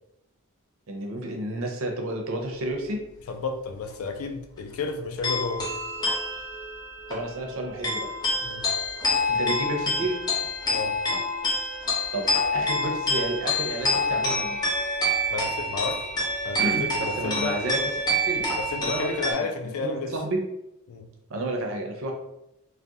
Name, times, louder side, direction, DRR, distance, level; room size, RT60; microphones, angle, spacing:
voice 1, 0.9-3.0 7.1-8.1 9.3-10.2 12.1-14.6 16.6-17.8 18.1-18.4 18.8-19.5 19.8-20.4 21.3-22.1, right 1 dB, 65° right, 2 dB, 0.5 m, -31 dB
voice 2, 3.3-5.7 8.4-8.7 10.7-11.0 15.3-16.1 16.4-17.6 18.6-20.2 20.9-21.1, left 4 dB, 80° left, 5 dB, 0.3 m, -32 dB
sound 1, 5.2-19.3, left 1 dB, 20° left, 0.5 m, -27 dB
2.3 x 2.0 x 2.7 m, 0.86 s
head